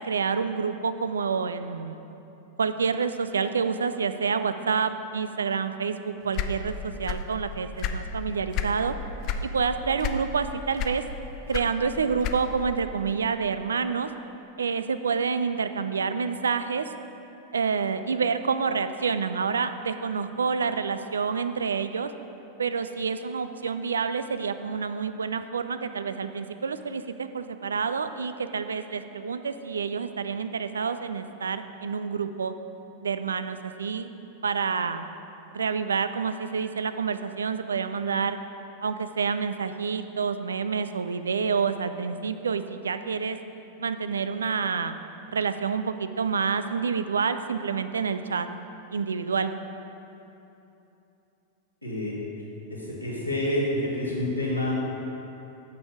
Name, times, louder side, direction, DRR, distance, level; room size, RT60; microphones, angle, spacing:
voice 1, 0.0-2.0 2.6-8.9 9.4-11.0 11.5-14.1 14.6-16.9 17.5-22.1 22.6-32.5 33.0-34.1 34.4-35.1 35.5-38.4 38.8-43.4 43.8-44.9 45.3-48.5 48.9-49.5, right 5 dB, 70° right, 10 dB, 0.4 m, -28 dB
sound 1, 6.3-7.4 7.6-8.8 9.2-9.5 10.0-10.4 10.8-12.7, left 7 dB, 40° left, 0.5 m, -30 dB
voice 2, 51.8-52.1 52.7-54.7, left 1 dB, 90° left, -6 dB, 2.1 m, -28 dB
9.3 x 6.9 x 4.8 m, 2.9 s
figure-of-eight pair, 90°, 0 cm